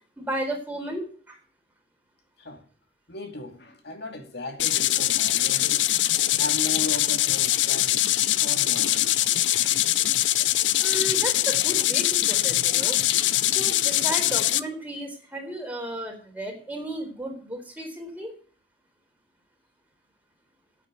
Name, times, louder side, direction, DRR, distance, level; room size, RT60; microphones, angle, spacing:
voice 1, 0.2-1.4 10.8-13.0 13.4-18.3, right 1 dB, 10° right, 3.9 m, -34 dB
voice 2, 3.1-7.9 8.4-9.1 11.7-11.8 14.1-14.2, left 1 dB, 65° left, 2.3 m, -37 dB
sound 1, 4.6-14.6, left 14 dB, 90° left, 0.5 m, -23 dB
9.0 x 8.4 x 9.1 m
head